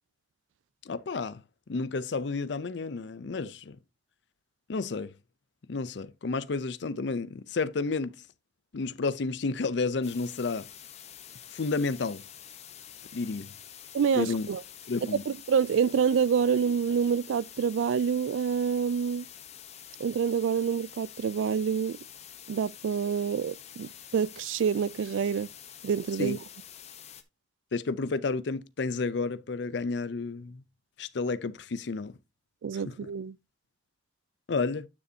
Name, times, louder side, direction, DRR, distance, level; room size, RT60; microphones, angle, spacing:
voice 1, 0.9-1.4 1.7-3.8 4.7-5.1 5.7-8.2 8.7-10.7 11.5-12.2 13.1-13.5 14.2-14.5 14.9-15.2 26.2-26.4 27.7-30.6 31.0-32.1 32.9-33.0 34.5-34.9, left 4 dB, 65° left, 0.5 m, -31 dB
sound 1, 10.0-27.2, left 9 dB, 35° left, 0.9 m, -48 dB
voice 2, 13.9-14.6 15.0-19.3 20.0-22.0 22.5-25.5 25.8-26.4 32.6-33.4, right 7 dB, 80° right, 0.3 m, -27 dB
9.6 x 6.7 x 2.7 m
head